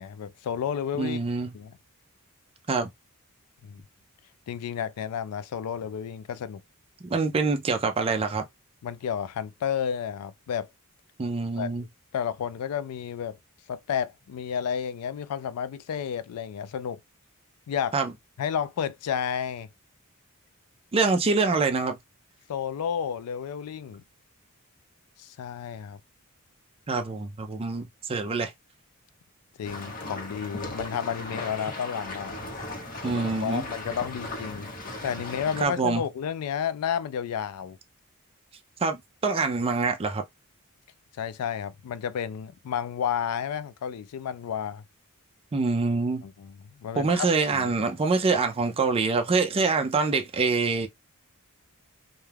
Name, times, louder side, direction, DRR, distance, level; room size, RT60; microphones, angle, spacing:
voice 1, 0.0-1.2 1.5-1.7 3.6-3.8 4.5-6.6 8.8-10.7 11.6-11.9 12.1-13.4 13.7-17.0 17.7-18.0 18.4-19.7 22.5-24.0 25.2-26.0 29.6-32.4 33.4-34.7 35.0-37.8 41.2-44.8 46.2-47.3 47.5-47.8, left 8 dB, 80° left, 0.3 m, -31 dB
voice 2, 1.0-1.5 2.7-2.9 7.1-8.4 11.2-11.8 17.9-18.1 20.9-22.0 26.9-28.5 33.0-33.7 35.6-36.0 38.8-40.2 45.5-46.2 47.0-50.9, right 4 dB, 25° right, 0.4 m, -25 dB
sound 1, 29.6-35.7, left 2 dB, 40° left, 0.8 m, -37 dB
2.3 x 2.2 x 3.2 m
head